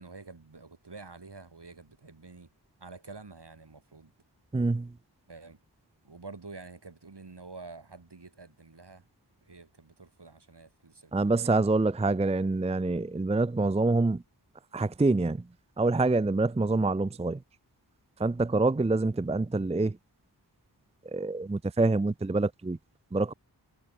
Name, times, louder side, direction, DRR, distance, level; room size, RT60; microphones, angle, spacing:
voice 1, 0.0-2.5 2.8-4.1 5.3-5.6 6.0-9.0 9.4-11.1 11.4-11.6, right 3 dB, 70° right, 4.7 m, -48 dB
voice 2, 4.5-4.9 11.1-14.2 14.7-15.4 15.8-17.4 18.2-20.0 21.0-22.8 23.1-23.3, right 3 dB, 15° right, 0.5 m, -26 dB
wide cardioid pair, 55°, 42 cm